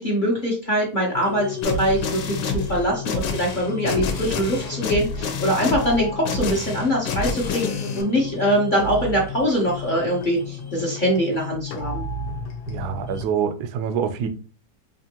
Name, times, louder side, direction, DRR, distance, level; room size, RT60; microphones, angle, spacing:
voice 1, 0.0-12.0, equal, 40° left, 0.8 m, -23 dB
sound 1, 1.1-13.3, left 5 dB, 70° left, 1.2 m, -34 dB
sound 2, 1.6-8.0, left 3 dB, 90° left, 1.4 m, -28 dB
voice 2, 12.7-14.3, right 7 dB, 70° right, 1.0 m, -25 dB
5.1 x 2.5 x 2.8 m
omnidirectional pair, 1.9 m